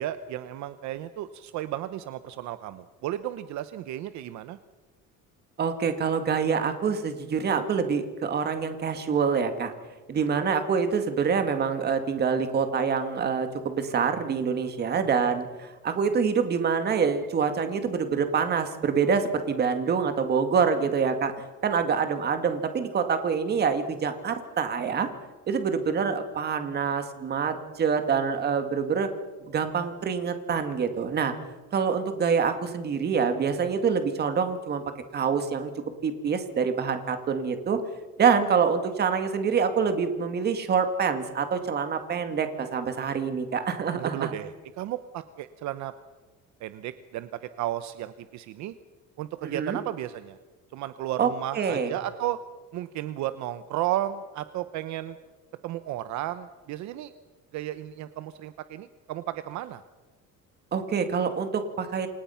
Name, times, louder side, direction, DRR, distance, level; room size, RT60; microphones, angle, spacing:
voice 1, 0.0-4.6 43.9-45.9 46.6-48.7 49.2-50.4 50.7-52.4 52.7-55.2 55.6-57.1 57.5-59.8, right 13 dB, 60° right, 12 dB, 1.0 m, -33 dB
voice 2, 5.6-9.7 10.1-21.3 21.6-25.1 25.5-29.1 29.5-31.3 31.7-34.8 35.1-35.7 36.0-37.8 38.2-44.3 49.4-49.8 51.2-51.3 51.5-51.9 60.7-62.1, right 6 dB, 30° right, 8 dB, 2.1 m, -26 dB
28.5 x 25.5 x 5.8 m, 1.3 s
cardioid pair, 180°, 32 cm